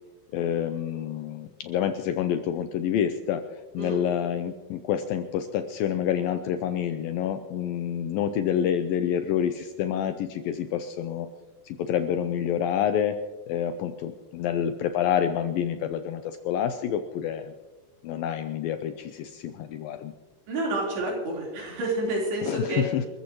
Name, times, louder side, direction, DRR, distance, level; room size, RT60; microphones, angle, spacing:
voice 1, 0.3-3.4 3.7-11.3 11.7-13.2 13.5-17.5 18.0-20.1 22.4-23.1, left 9 dB, 80° left, 8 dB, 2.1 m, -28 dB
voice 2, 20.5-22.9, right 2 dB, 75° right, -3 dB, 6.0 m, -29 dB
28.0 x 14.5 x 3.1 m, 1.3 s
omnidirectional pair, 4.7 m